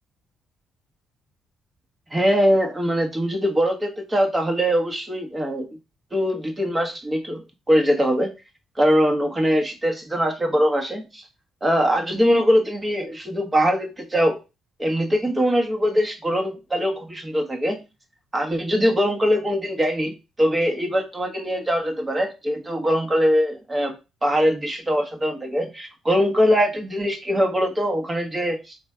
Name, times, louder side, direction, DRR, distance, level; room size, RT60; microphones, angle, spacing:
voice 1, 2.1-5.7 6.1-8.3 8.8-11.2 11.6-14.4 14.8-17.8 18.3-23.9 24.2-28.7, equal, 20° right, 2 dB, 1.4 m, -22 dB
4.4 x 3.2 x 3.5 m, 0.27 s
cardioid pair, 90°, 0 cm